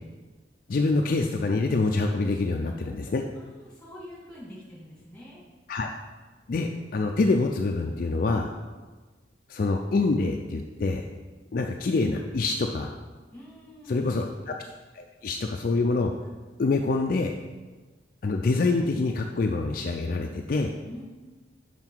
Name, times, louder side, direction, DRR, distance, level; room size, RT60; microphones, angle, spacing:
voice 1, 0.7-3.2 5.7-5.9 6.5-8.5 9.5-11.0 11.5-12.9 13.9-14.5 14.9-16.1 16.6-17.3 18.2-20.7, left 3 dB, 50° left, 3 dB, 0.4 m, -26 dB
voice 2, 3.3-5.4 13.3-14.2 20.8-21.0, equal, 5° left, -6 dB, 2.0 m, -45 dB
5.8 x 5.7 x 4.5 m, 1.3 s
head